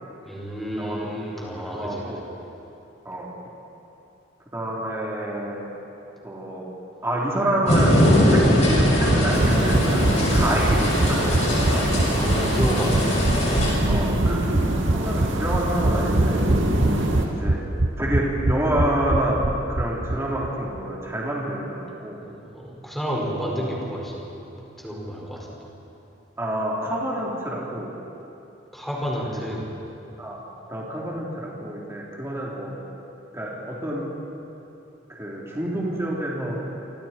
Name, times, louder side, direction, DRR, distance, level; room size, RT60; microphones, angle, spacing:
voice 1, 0.3-2.1 12.1-13.2 22.3-24.2 24.8-25.6 28.7-29.7, equal, ahead, -4 dB, 5.5 m, -30 dB
voice 2, 0.8-1.1 1.7-2.2 3.1-3.3 4.5-5.7 6.2-6.6 7.0-11.3 11.6-11.9 12.2-12.3 13.9-16.5 17.4-17.6 18.0-19.4 19.7-22.2 26.4-27.9 29.3-29.5 30.2-30.4 30.7-32.7 33.3-34.0 35.1-36.6, right 1 dB, 15° right, -5 dB, 3.8 m, -28 dB
sound 1, 7.7-13.7, left 1 dB, 35° left, 6.8 m, -21 dB
sound 2, 8.4-20.2 20.4-20.5 20.8-20.9, right 2 dB, 55° right, 1.0 m, -24 dB
sound 3, 9.3-17.3, right 1 dB, 80° right, 2.7 m, -26 dB
29.0 x 27.0 x 4.6 m, 2.8 s
head